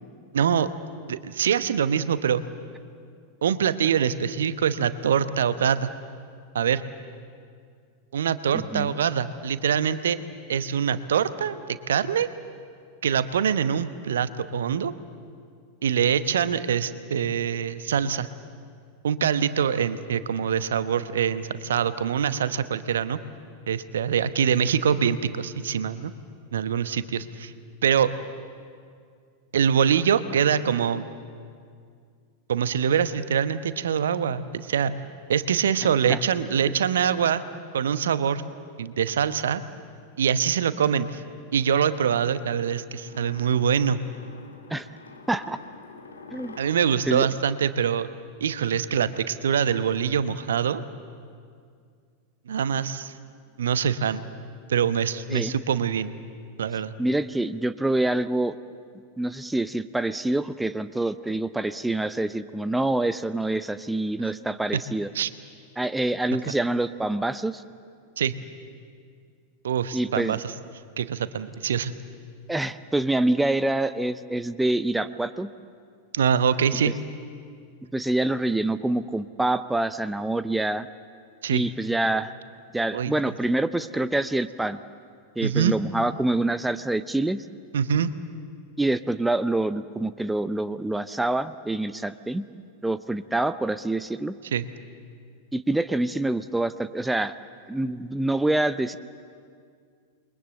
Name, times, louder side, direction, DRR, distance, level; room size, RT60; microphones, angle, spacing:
voice 1, 0.3-0.7 1.1-2.4 3.4-5.9 6.5-6.8 8.1-10.2 10.5-12.3 13.0-14.9 15.8-18.3 19.0-23.2 23.7-26.1 26.5-27.5 27.8-28.1 29.5-31.0 32.5-34.9 35.3-37.4 37.7-38.4 38.8-39.6 40.2-41.2 41.5-44.0 46.6-48.1 48.4-50.8 52.5-53.1 53.6-54.2 54.7-56.1 56.6-56.9 64.7-64.8 65.1-65.3 68.2-68.3 69.6-70.4 71.0-71.9 76.1-76.9 81.4-81.6 82.9-83.1 85.4-85.7 87.7-88.1 94.5-94.6, right 8 dB, 65° right, 13 dB, 1.0 m, -24 dB
voice 2, 8.5-8.9 36.1-36.2 44.7-44.9 45.3-45.6 46.3-46.6 47.1-47.3 55.3-55.5 57.0-58.6 59.2-65.1 65.8-67.6 69.9-70.4 72.5-75.5 76.8-76.9 77.9-80.9 81.5-82.3 82.7-84.8 85.4-87.4 88.8-92.4 92.8-94.4 95.5-97.4 97.7-99.0, right 2 dB, 5° right, 13 dB, 0.6 m, -26 dB
sound 1, 43.0-48.3, left 4 dB, 75° left, 2.6 m, -47 dB
28.5 x 22.5 x 7.8 m, 2.2 s
figure-of-eight pair, 90°, 0 cm